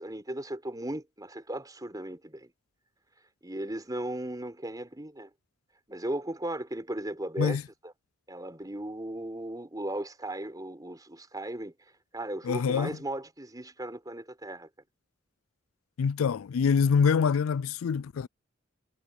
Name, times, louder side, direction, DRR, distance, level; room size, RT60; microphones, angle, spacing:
voice 1, 0.0-2.5 3.4-5.3 5.9-7.6 7.8-7.9 8.3-11.7 12.1-14.7, right 1 dB, 20° right, 4.1 m, -36 dB
voice 2, 12.4-12.9 16.0-18.3, left 6 dB, 90° left, 0.4 m, -25 dB
head